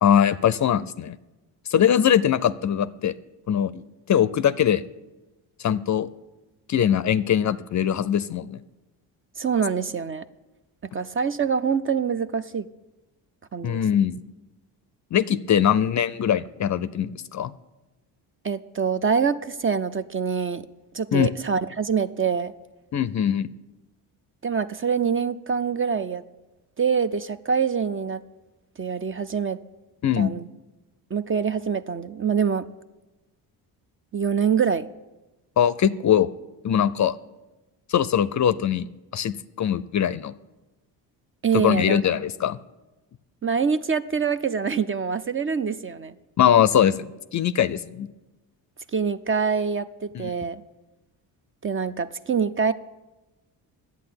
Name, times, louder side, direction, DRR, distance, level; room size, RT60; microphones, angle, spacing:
voice 1, 0.0-1.2 1.7-3.1 3.5-3.8 4.1-4.8 5.6-6.1 6.7-8.6 13.6-14.2 15.1-17.5 21.1-21.3 22.9-23.5 30.0-30.3 35.6-36.3 36.6-37.2 37.9-38.9 39.1-40.3 41.5-42.6 46.4-48.1 50.1-50.3, left 9 dB, 40° left, 17 dB, 0.5 m, -21 dB
voice 2, 9.4-10.2 10.9-12.7 13.5-13.8 18.4-20.7 20.9-22.5 24.4-26.2 26.8-28.2 28.8-29.6 30.2-30.5 31.1-32.6 34.1-34.8 41.4-42.0 43.4-46.1 48.9-50.6 51.6-52.7, right 6 dB, 25° right, 12 dB, 0.5 m, -25 dB
10.5 x 8.4 x 8.7 m, 1.1 s
supercardioid pair, 65°, 47 cm